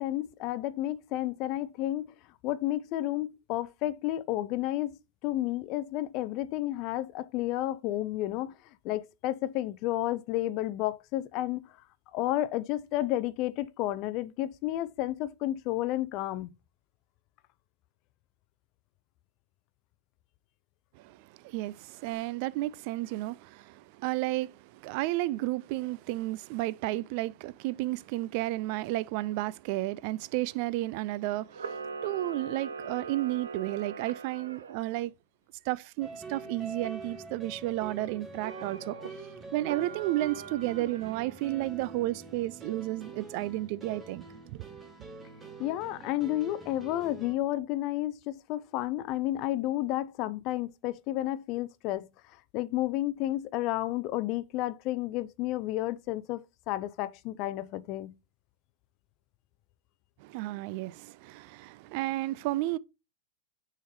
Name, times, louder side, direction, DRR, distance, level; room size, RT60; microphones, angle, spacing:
voice 1, 0.0-2.1 2.4-5.0 5.2-8.5 8.8-11.6 12.1-16.5 45.6-52.1 52.5-58.2, left 15 dB, 45° left, 0.5 m, -31 dB
voice 2, 21.4-31.6 32.0-35.1 35.7-39.0 39.5-44.6 60.2-62.8, right 17 dB, 55° right, 0.3 m, -32 dB
Camera, 31.5-34.8 38.4-39.1 39.6-41.4, right 5 dB, 85° right, 0.7 m, -41 dB
sound 1, 36.0-47.3, right 3 dB, 15° right, 1.5 m, -45 dB
6.3 x 3.7 x 4.2 m
hypercardioid pair, 110°, 0 cm